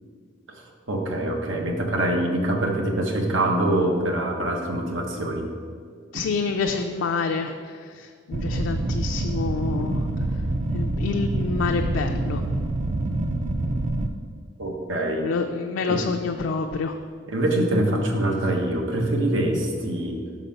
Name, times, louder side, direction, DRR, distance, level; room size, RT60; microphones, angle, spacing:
voice 1, 0.9-5.5 9.7-9.8 14.6-15.3 15.8-16.0 17.3-20.2, right 1 dB, 90° right, 2 dB, 1.0 m, -24 dB
voice 2, 6.1-10.0 10.7-12.4 13.7-13.8 15.2-17.0, left 4 dB, 75° left, 4 dB, 0.3 m, -28 dB
sound 1, 8.3-14.1, right 2 dB, 40° right, 0.4 m, -26 dB
6.2 x 4.1 x 5.5 m, 2.1 s
head